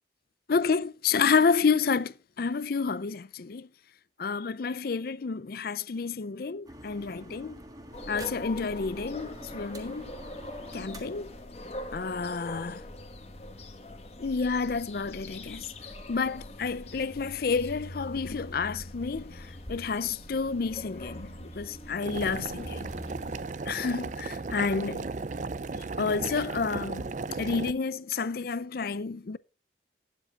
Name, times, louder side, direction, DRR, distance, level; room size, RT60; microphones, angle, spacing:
voice 1, 0.5-3.7 4.2-7.5 8.1-10.1 10.7-11.3 11.9-12.8 14.2-15.7 16.1-22.9 23.7-25.1 26.0-27.0 27.4-29.4, left 5 dB, 50° left, 0.5 m, -29 dB
sound 1, 6.7-12.1, right 1 dB, 20° right, 1.6 m, -47 dB
sound 2, 7.9-23.4, left 1 dB, 35° left, 1.5 m, -43 dB
Boiling, 22.0-27.7, right 3 dB, 40° right, 0.5 m, -35 dB
20.0 x 7.6 x 2.4 m
head